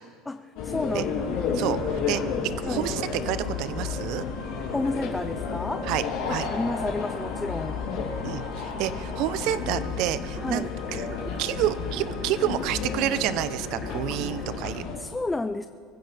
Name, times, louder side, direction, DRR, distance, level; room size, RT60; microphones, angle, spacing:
voice 1, 0.3-1.6 2.7-2.9 4.7-5.9 6.3-7.9 10.4-10.7 14.1-14.2 15.0-15.7, left 2 dB, 10° left, 10 dB, 0.3 m, -31 dB
sound 1, 0.6-15.0, left 5 dB, 60° left, 3.1 m, -32 dB
sound 2, 0.8-14.6, left 6 dB, 85° left, 4.7 m, -46 dB
voice 2, 1.5-2.2 2.6-4.2 5.9-6.0 6.3-6.5 8.2-10.7 10.9-11.0 11.4-14.8, right 12 dB, 55° right, 14 dB, 0.7 m, -29 dB
sound 3, 9.5-14.7, right 2 dB, 20° right, 2.2 m, -43 dB
23.5 x 15.0 x 3.5 m, 2.2 s
cardioid pair, 155°, 0 cm